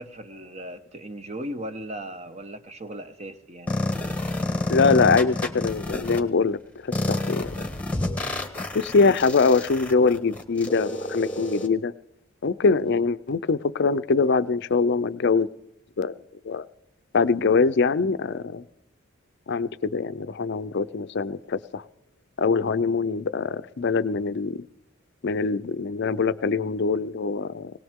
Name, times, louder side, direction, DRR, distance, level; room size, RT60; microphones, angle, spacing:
voice 1, 0.0-3.8, right 1 dB, 30° right, 9 dB, 1.0 m, -37 dB
sound 1, 3.7-6.2 6.9-11.7, left 2 dB, 5° left, 1.3 m, -29 dB
voice 2, 4.7-6.6 6.8-7.5 8.7-11.9 12.4-15.5 16.0-16.1 16.5-16.6 17.1-18.6 19.5-21.8 22.4-24.6 25.2-27.7, left 4 dB, 55° left, 14 dB, 0.5 m, -23 dB
20.5 x 18.5 x 3.7 m, 0.80 s
head